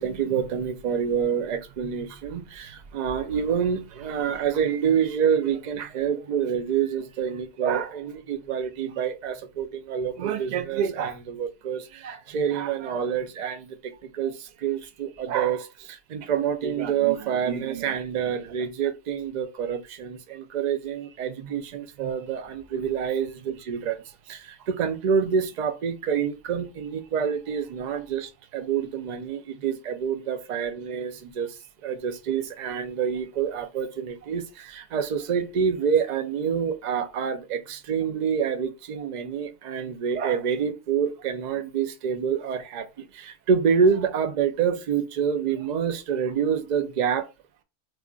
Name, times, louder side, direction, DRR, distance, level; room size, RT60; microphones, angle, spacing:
voice 1, 0.0-13.8 14.1-24.0 24.3-31.5 31.8-42.9 43.1-47.3, right 7 dB, 65° right, 0.4 m, -27 dB
2.4 x 2.3 x 3.6 m
omnidirectional pair, 1.3 m